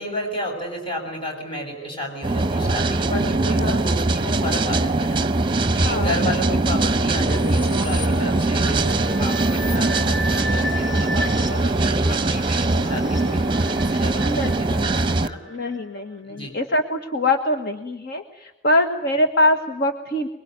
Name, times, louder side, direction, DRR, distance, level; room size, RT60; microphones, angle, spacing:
voice 1, 0.0-5.3 5.7-15.4 16.3-16.5, equal, 30° left, 2 dB, 7.3 m, -32 dB
sound 1, 2.2-15.3, right 2 dB, 25° right, 0.9 m, -21 dB
voice 2, 3.5-3.8 5.7-6.6 9.8-10.2 14.2-20.3, left 1 dB, 55° left, 6 dB, 1.5 m, -24 dB
sound 2, 7.2-15.8, left 1 dB, 85° left, 6.3 m, -33 dB
25.0 x 22.5 x 9.5 m, 1.0 s
head